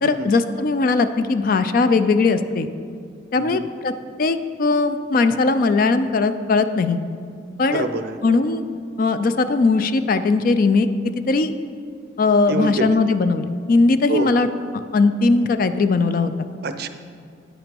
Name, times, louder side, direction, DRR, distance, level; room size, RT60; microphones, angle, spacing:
voice 1, 0.0-2.7 3.3-3.9 4.2-7.0 7.6-7.9 8.2-8.6 9.0-10.9 11.3-11.5 12.2-14.5 14.7-16.5, left 3 dB, 45° left, 10 dB, 0.3 m, -19 dB
voice 2, 7.7-8.2 12.5-13.0 14.1-14.5 16.6-16.9, right 2 dB, 55° right, 10 dB, 0.5 m, -26 dB
9.5 x 5.9 x 5.2 m, 2.2 s
head